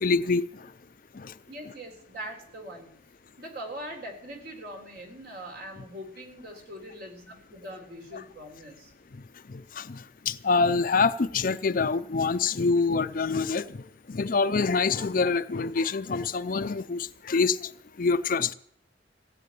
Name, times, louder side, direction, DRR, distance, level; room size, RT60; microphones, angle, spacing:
voice 1, 0.0-0.4 1.1-1.3 9.5-13.8 14.1-17.7 18.0-18.5, left 4 dB, 50° left, 13 dB, 0.6 m, -26 dB
voice 2, 1.5-2.9 3.4-8.9, equal, 60° right, 3 dB, 4.0 m, -42 dB
16.5 x 7.9 x 9.3 m, 0.65 s
head